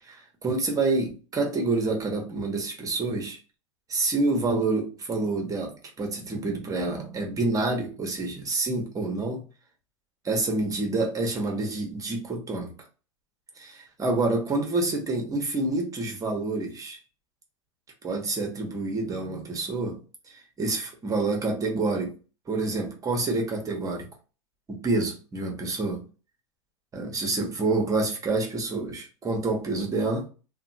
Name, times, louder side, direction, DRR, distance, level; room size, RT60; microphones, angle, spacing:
voice 1, 0.1-3.4 3.9-5.7 6.0-9.4 10.2-12.7 13.6-17.0 18.0-20.0 20.6-22.1 22.5-24.1 24.7-26.0 26.9-30.3, right 3 dB, 20° right, 0.8 m, -27 dB
2.7 x 2.2 x 2.6 m
hypercardioid pair, 110°, 18 cm